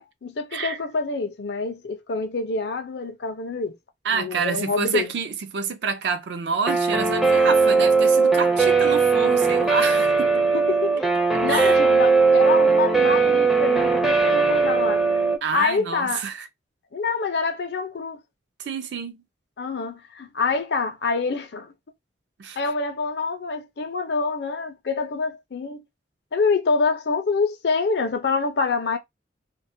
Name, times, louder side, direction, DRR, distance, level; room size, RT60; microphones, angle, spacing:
voice 1, 0.0-3.8 4.1-5.1 10.5-15.0 15.5-16.2 16.9-18.2 19.6-21.7 22.6-25.8 26.3-29.0, left 4 dB, 65° left, 0.5 m, -26 dB
voice 2, 4.0-10.4 11.5-11.8 15.4-16.5 18.6-19.2 22.4-22.6, right 5 dB, 70° right, 0.4 m, -28 dB
Guitar, 6.7-15.4, right 4 dB, ahead, 0.4 m, -19 dB
2.2 x 2.1 x 2.6 m
head